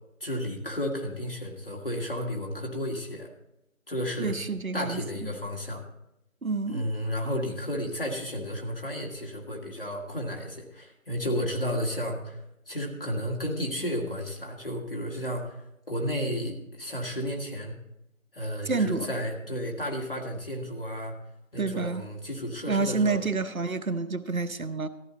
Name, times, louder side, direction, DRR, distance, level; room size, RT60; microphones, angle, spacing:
voice 1, 0.2-3.3 3.9-4.4 4.7-5.8 6.7-15.6 15.9-17.8 18.3-21.1 21.5-23.2, equal, 40° left, 0 dB, 2.0 m, -32 dB
voice 2, 4.2-5.0 6.4-6.8 18.7-19.1 21.6-22.0 22.7-24.9, right 4 dB, 90° right, 13 dB, 1.0 m, -28 dB
13.5 x 12.5 x 3.9 m, 0.84 s
figure-of-eight pair, 170°, 41 cm